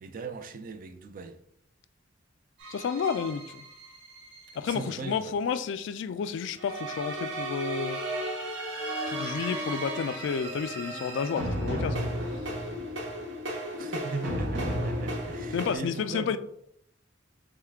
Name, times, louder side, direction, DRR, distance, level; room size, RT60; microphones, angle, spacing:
voice 1, 0.0-1.4 4.5-5.4 13.8-16.4, right 4 dB, 45° right, 0.4 m, -39 dB
sound 1, 2.6-4.8 6.6-15.8, right 1 dB, 70° right, 1.1 m, -34 dB
voice 2, 2.7-3.6 4.6-8.0 9.1-12.4 15.5-16.4, left 6 dB, 65° left, 0.3 m, -31 dB
3.6 x 3.1 x 3.4 m
head